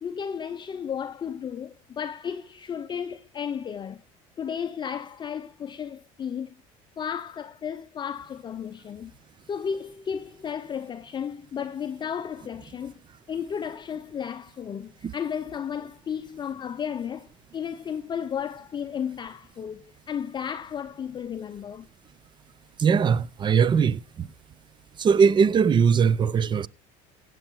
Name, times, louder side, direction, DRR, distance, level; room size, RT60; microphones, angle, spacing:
voice 1, 0.0-4.0 4.4-6.6 7.0-9.1 9.5-13.0 13.3-21.9, left 7 dB, 25° left, 0.6 m, -33 dB
voice 2, 22.8-24.3 25.0-26.7, right 6 dB, 25° right, 0.5 m, -20 dB
16.5 x 7.8 x 4.6 m
supercardioid pair, 115°, 17 cm